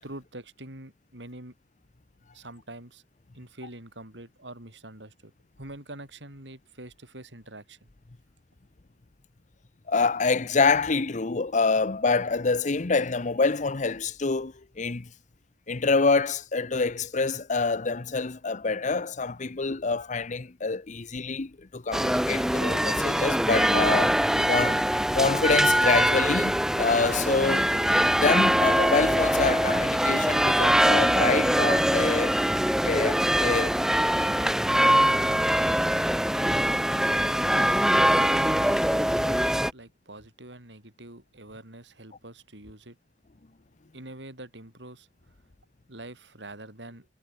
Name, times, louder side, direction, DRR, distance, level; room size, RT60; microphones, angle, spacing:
voice 1, 0.0-1.5 2.3-3.0 3.4-5.3 5.6-7.9 37.5-43.0 43.9-45.1 45.9-47.1, right 1 dB, 85° right, 6.8 m, -45 dB
voice 2, 9.9-15.1 15.7-24.9 25.1-27.7 28.1-32.4 32.9-33.8, left 4 dB, 45° left, 0.8 m, -26 dB
sound 1, 21.9-39.7, equal, 5° right, 2.2 m, -23 dB
head